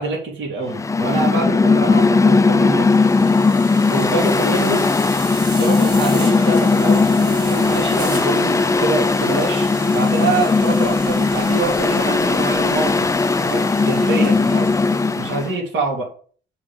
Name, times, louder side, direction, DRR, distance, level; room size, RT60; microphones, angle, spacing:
voice 1, 0.0-2.9 3.9-4.9 5.6-13.1 13.4-14.7 15.2-16.1, right 3 dB, 70° right, -2 dB, 3.3 m, -25 dB
Mechanical fan, 0.7-15.5, left 3 dB, 15° left, 0.4 m, -17 dB
sound 1, 2.7-15.5, right 2 dB, 20° right, 3.0 m, -34 dB
8.6 x 4.6 x 7.1 m, 0.44 s
cardioid pair, 90°, 20 cm